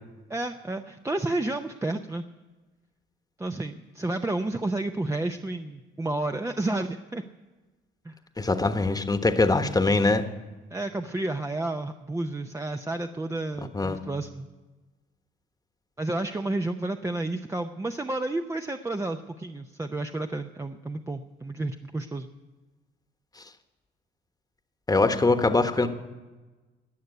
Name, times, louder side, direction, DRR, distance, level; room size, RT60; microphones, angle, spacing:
voice 1, 0.3-2.2 3.4-7.3 8.0-8.2 10.7-14.5 16.0-22.3, right 2 dB, 15° right, 5 dB, 0.7 m, -31 dB
voice 2, 8.4-10.2 13.7-14.0 24.9-25.9, left 3 dB, 15° left, 8 dB, 1.2 m, -22 dB
18.0 x 6.5 x 9.2 m, 1.2 s
cardioid pair, 85°, 21 cm